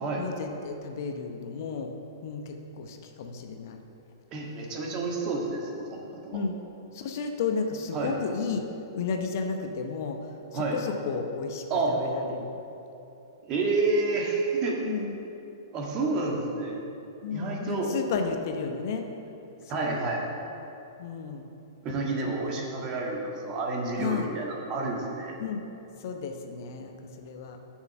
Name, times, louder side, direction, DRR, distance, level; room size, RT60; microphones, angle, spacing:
voice 1, 0.2-1.9 2.2-3.8 6.3-6.6 6.9-8.6 8.9-10.2 10.5-12.6 14.8-15.2 17.2-19.0 19.7-20.1 21.0-21.4 22.3-22.6 24.0-24.3 25.4-25.6 26.0-27.6, left 5 dB, 50° left, 4 dB, 0.8 m, -33 dB
voice 2, 4.3-6.4 7.9-8.1 10.5-10.8 11.7-12.0 13.5-14.8 15.7-16.8 17.3-17.9 19.7-20.2 21.8-25.3, right 3 dB, 35° right, -1 dB, 1.7 m, -29 dB
6.9 x 6.4 x 6.7 m, 2.9 s
figure-of-eight pair, 110°, 2 cm